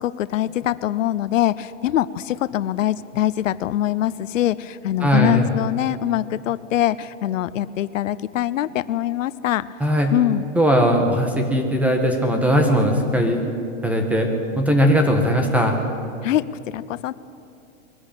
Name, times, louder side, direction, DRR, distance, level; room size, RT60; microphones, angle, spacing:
voice 1, 0.0-9.7 10.1-10.4 16.2-17.1, left 13 dB, 85° left, 16 dB, 0.7 m, -23 dB
voice 2, 5.0-5.4 9.8-10.1 10.5-13.5 13.8-14.3 14.5-15.8, equal, 5° right, 3 dB, 1.7 m, -19 dB
21.5 x 13.5 x 8.9 m, 2.6 s
supercardioid pair, 150°, 38 cm